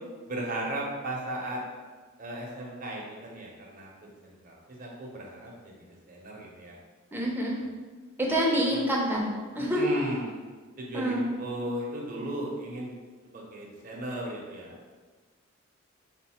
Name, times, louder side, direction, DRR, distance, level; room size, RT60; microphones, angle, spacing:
voice 1, 0.3-1.6 2.2-5.7 6.1-6.8 8.7-8.8 9.6-10.3 10.8-12.9 13.2-14.9, right 1 dB, 40° right, -2 dB, 0.8 m, -36 dB
voice 2, 7.1-7.6 8.2-9.9 10.9-11.3, equal, 10° right, -3 dB, 0.7 m, -27 dB
3.7 x 2.6 x 4.3 m, 1.4 s
head